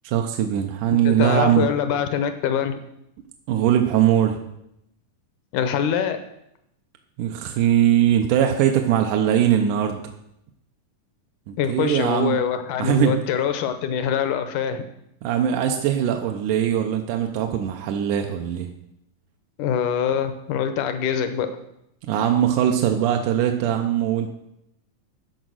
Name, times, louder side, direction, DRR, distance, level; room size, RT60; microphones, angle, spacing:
voice 1, 0.0-1.7 3.5-4.4 7.2-10.0 11.5-12.4 12.8-13.1 15.2-18.7 22.1-24.3, right 10 dB, 75° right, 3 dB, 2.1 m, -21 dB
voice 2, 1.1-2.8 5.5-6.2 11.6-14.8 19.6-21.5, left 8 dB, 75° left, 9 dB, 2.1 m, -24 dB
13.5 x 5.0 x 6.4 m, 0.80 s
omnidirectional pair, 4.1 m